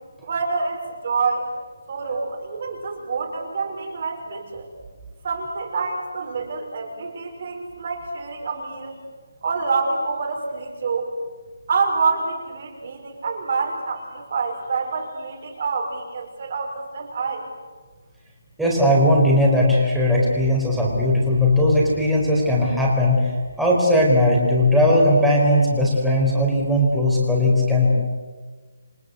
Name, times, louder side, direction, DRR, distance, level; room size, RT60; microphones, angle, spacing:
voice 1, 0.2-1.5 1.9-4.7 5.2-9.0 9.4-11.1 11.7-17.5, right 4 dB, 35° right, 3 dB, 5.6 m, -27 dB
voice 2, 18.6-23.3 23.6-27.9, left 1 dB, ahead, -5 dB, 4.6 m, -18 dB
29.0 x 24.0 x 8.4 m, 1.4 s
hypercardioid pair, 175°, 0 cm